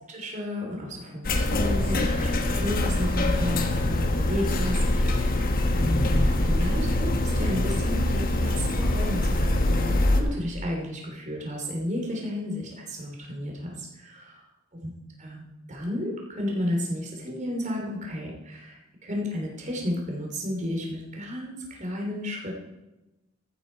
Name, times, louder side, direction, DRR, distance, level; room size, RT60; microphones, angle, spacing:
voice 1, 0.1-14.1 14.8-14.9 15.2-22.6, left 1 dB, 35° right, 0 dB, 3.0 m, -32 dB
sound 1, 1.2-10.2, left 1 dB, 45° left, 1.2 m, -24 dB
14.0 x 9.1 x 4.5 m, 0.99 s
head